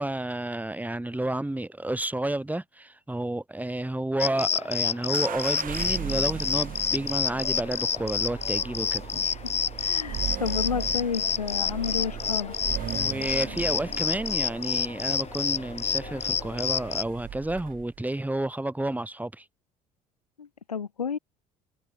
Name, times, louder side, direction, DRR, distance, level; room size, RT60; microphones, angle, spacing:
voice 1, 0.0-9.2 12.9-19.5, right 1 dB, 10° right, 3.5 m, -31 dB
sound 1, 4.2-17.0, left 7 dB, 35° left, 2.5 m, -29 dB
sound 2, 5.1-18.0, right 10 dB, 45° right, 6.2 m, -38 dB
voice 2, 9.8-12.5 20.4-21.2, left 6 dB, 85° left, 1.8 m, -31 dB
figure-of-eight pair, 55°, 19 cm